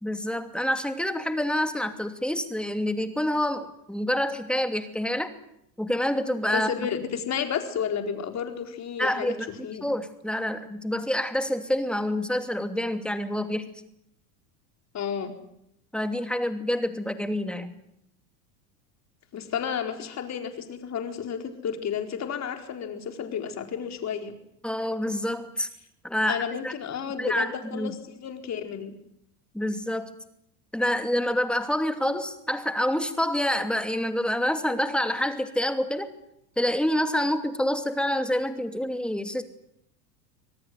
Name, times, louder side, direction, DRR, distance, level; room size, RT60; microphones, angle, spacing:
voice 1, 0.0-5.3 5.8-6.9 9.0-13.7 15.9-17.7 24.6-25.7 26.0-26.7 27.2-27.9 29.5-30.1 30.7-36.1 36.6-39.4, left 1 dB, ahead, 8 dB, 2.8 m, -27 dB
voice 2, 6.5-9.4 9.6-9.8 14.9-15.3 19.3-24.3 26.2-29.0, left 7 dB, 35° left, 6 dB, 4.4 m, -32 dB
25.5 x 18.5 x 9.6 m, 0.75 s
supercardioid pair, 115°, 47 cm